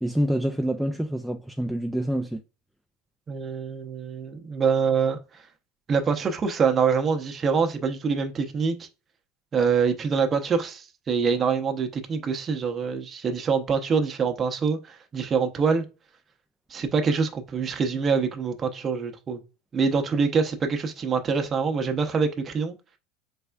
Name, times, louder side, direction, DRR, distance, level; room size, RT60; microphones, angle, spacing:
voice 1, 0.0-2.4, equal, ahead, 0.4 m, -26 dB
voice 2, 3.3-5.2 5.9-8.9 9.5-15.8 16.7-19.4 19.7-22.8, right 5 dB, 35° right, 0.7 m, -25 dB
4.1 x 3.4 x 2.3 m
supercardioid pair, 95°, 0 cm